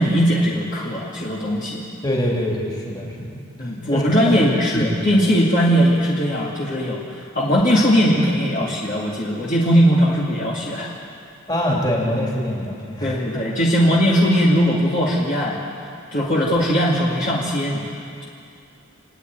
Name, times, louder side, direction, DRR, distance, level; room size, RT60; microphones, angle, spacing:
voice 1, 0.0-1.8 3.6-10.9 13.0-15.6 16.1-17.8, equal, 35° left, -6 dB, 2.4 m, -19 dB
voice 2, 2.0-3.4 3.9-4.4 4.7-5.0 11.5-13.4, equal, 20° left, -3 dB, 3.4 m, -24 dB
30.0 x 10.5 x 9.4 m, 2.5 s
head